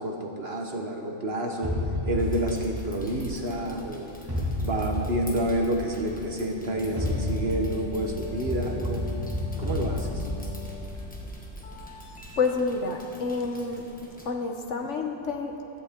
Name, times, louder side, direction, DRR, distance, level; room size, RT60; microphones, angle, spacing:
voice 1, 0.0-1.7 2.1-4.1 4.6-9.0 9.6-10.3, right 1 dB, 45° right, 2 dB, 1.2 m, -29 dB
sound 1, 1.6-3.8 4.3-6.1 6.8-11.9, left 1 dB, 15° right, 2.2 m, -32 dB
sound 2, 2.2-14.3, equal, 5° left, 1.3 m, -49 dB
sound 3, 6.7-12.5, left 5 dB, 35° left, 0.5 m, -41 dB
voice 2, 12.4-13.8 14.2-15.5, left 4 dB, 60° left, 4 dB, 1.1 m, -28 dB
15.5 x 14.0 x 3.6 m, 2.9 s
omnidirectional pair, 1.5 m